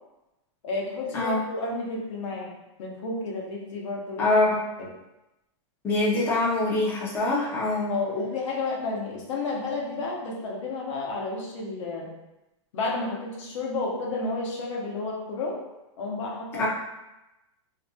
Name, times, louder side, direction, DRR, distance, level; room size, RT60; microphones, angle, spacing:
voice 1, 0.6-2.5 2.8-4.4 4.8-4.9 7.9-12.1 12.7-15.6 16.0-16.7, left 3 dB, 70° left, -2 dB, 0.7 m, -31 dB
voice 2, 4.2-4.6 5.8-7.9 16.6-16.7, left 2 dB, 15° left, -6 dB, 0.5 m, -24 dB
2.6 x 2.1 x 2.7 m, 0.97 s
supercardioid pair, 155°, 16 cm